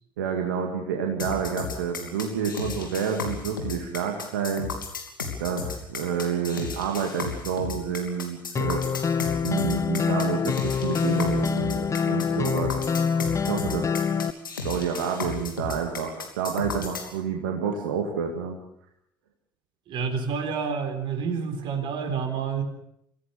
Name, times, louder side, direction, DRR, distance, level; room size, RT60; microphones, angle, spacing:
voice 1, 0.2-4.7 5.4-8.8 9.4-12.8 13.4-14.2 14.6-18.6, right 7 dB, 75° right, 2 dB, 2.3 m, -29 dB
sound 1, 1.2-17.1, left 5 dB, 85° left, 3.1 m, -34 dB
sound 2, 8.5-14.3, left 6 dB, 30° left, 1.0 m, -26 dB
voice 2, 19.9-22.6, right 6 dB, 50° right, 7 dB, 4.1 m, -28 dB
25.5 x 17.0 x 7.0 m, 0.74 s
figure-of-eight pair, 60°, 11 cm